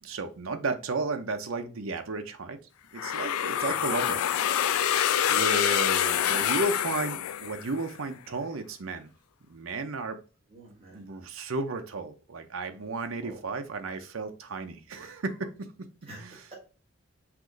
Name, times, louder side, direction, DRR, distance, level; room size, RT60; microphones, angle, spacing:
voice 1, 0.0-2.6 2.9-4.5 4.7-4.8 5.3-9.1 9.5-10.2 10.9-15.9 16.2-16.5, right 3 dB, 70° right, 7 dB, 0.7 m, -33 dB
sound 1, 3.0-7.9, left 10 dB, 85° left, 0.4 m, -26 dB
voice 2, 3.6-4.0 10.5-11.0 13.2-13.4 16.1-16.6, right 2 dB, 25° right, -4 dB, 1.5 m, -48 dB
5.9 x 2.6 x 3.0 m, 0.35 s
head